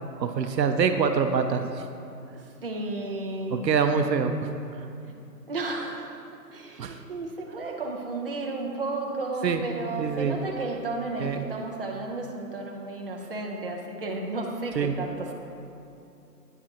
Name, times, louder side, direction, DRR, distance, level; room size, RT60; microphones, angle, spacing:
voice 1, 0.2-1.9 3.5-4.3 4.8-4.9 6.8-7.0 9.4-9.6 10.0-10.4 11.2-11.4 14.8-14.9, right 6 dB, 85° right, 8 dB, 0.7 m, -25 dB
voice 2, 2.3-3.7 5.5-15.3, right 2 dB, 35° right, 0 dB, 0.6 m, -33 dB
8.9 x 7.2 x 2.9 m, 2.8 s
hypercardioid pair, 165°, 49 cm